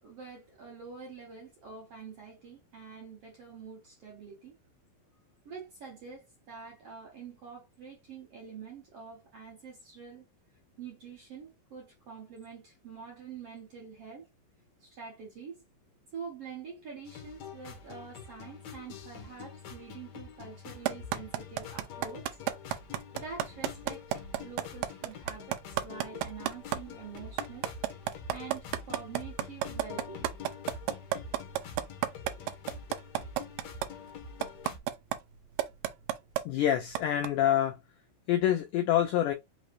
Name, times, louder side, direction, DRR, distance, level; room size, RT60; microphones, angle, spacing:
voice 1, 0.0-4.5 5.5-10.3 10.8-14.3 14.8-15.6 16.1-22.3 23.1-27.7 28.0-30.3 32.2-32.5, right 5 dB, 55° right, 1.8 m, -46 dB
sound 1, 17.0-34.8, left 5 dB, 65° left, 1.9 m, -46 dB
sound 2, 20.9-26.8 27.2-33.9 34.4-35.2 35.6-36.4 37.0-37.3, right 13 dB, 80° right, 2.0 m, -30 dB
voice 2, 36.5-37.8 38.3-39.3, left 11 dB, 85° left, 1.8 m, -26 dB
5.7 x 3.2 x 2.5 m
omnidirectional pair, 4.5 m